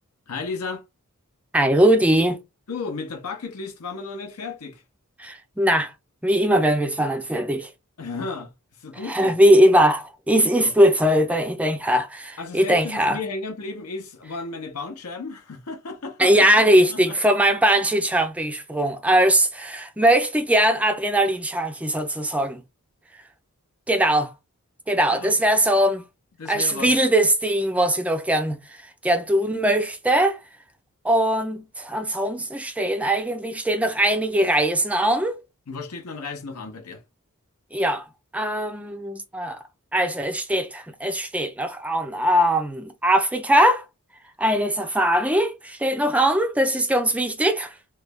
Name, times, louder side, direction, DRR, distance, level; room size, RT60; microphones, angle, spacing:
voice 1, 0.3-0.8 2.7-4.8 8.0-9.4 10.3-10.7 12.4-16.3 16.7-17.2 25.1-25.3 26.4-26.9 35.7-37.0, left 4 dB, 80° left, 0.7 m, -34 dB
voice 2, 1.5-2.4 5.2-5.9 6.2-7.7 9.1-13.2 16.2-22.6 23.9-24.3 24.9-26.0 26.5-30.4 31.0-35.4 37.7-38.1 38.3-39.6 39.9-43.8 44.4-47.7, right 1 dB, 5° right, 0.3 m, -20 dB
3.1 x 2.2 x 3.3 m
head